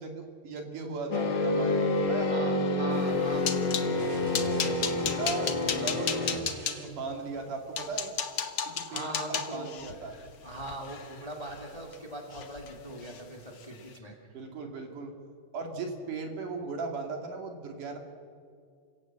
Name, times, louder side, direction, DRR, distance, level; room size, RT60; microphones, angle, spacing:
voice 1, 0.0-2.4 4.4-6.5 6.8-8.1 8.7-10.2 14.3-15.1 15.5-18.0, right 4 dB, 65° right, 3 dB, 3.8 m, -38 dB
sound 1, 1.1-6.4, left 2 dB, 45° left, 1.6 m, -28 dB
voice 2, 2.3-4.0 8.9-9.7 10.1-14.2, right 1 dB, 15° left, 1 dB, 1.9 m, -41 dB
sound 2, 3.0-3.9 4.3-6.8 7.4-7.5 7.8-12.0 12.3-12.7 13.0-13.2 13.6-13.8, left 7 dB, 80° left, 1.0 m, -34 dB
sound 3, 4.0-7.2, right 2 dB, 85° right, 4.8 m, -44 dB
29.5 x 17.5 x 7.7 m, 2.3 s
omnidirectional pair, 3.9 m